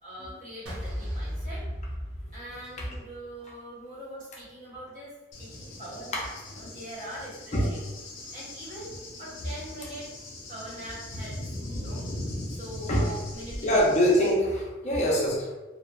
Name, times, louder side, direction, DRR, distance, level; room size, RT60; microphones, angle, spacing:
voice 1, 0.0-1.6 2.3-5.1 5.4-7.9 8.3-8.9 9.2-10.1 10.5-12.0 12.5-14.0, equal, 40° right, -8 dB, 1.0 m, -42 dB
sound 1, 0.7-3.0, equal, 70° right, 0.6 m, -35 dB
Cricket / Thunder, 5.3-14.3, left 1 dB, 80° left, 0.6 m, -40 dB
voice 2, 13.6-15.6, equal, 35° left, -3 dB, 0.5 m, -24 dB
2.7 x 2.0 x 2.2 m, 1.1 s
head